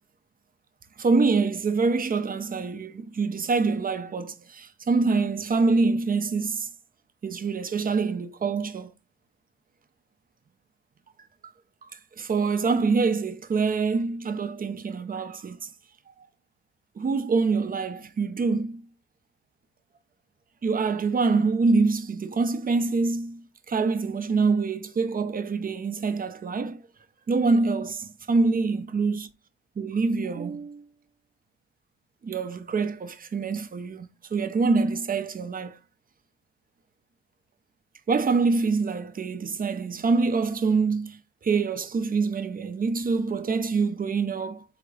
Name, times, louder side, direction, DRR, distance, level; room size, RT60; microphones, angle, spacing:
voice 1, 1.0-6.7 7.2-8.9 12.2-15.7 17.0-18.8 20.6-26.8 27.3-29.3 29.8-30.8 32.2-34.1 34.3-35.8 38.1-44.6, right 4 dB, 30° right, 0.6 m, -25 dB
3.8 x 2.9 x 4.7 m
cardioid pair, 90°, 30 cm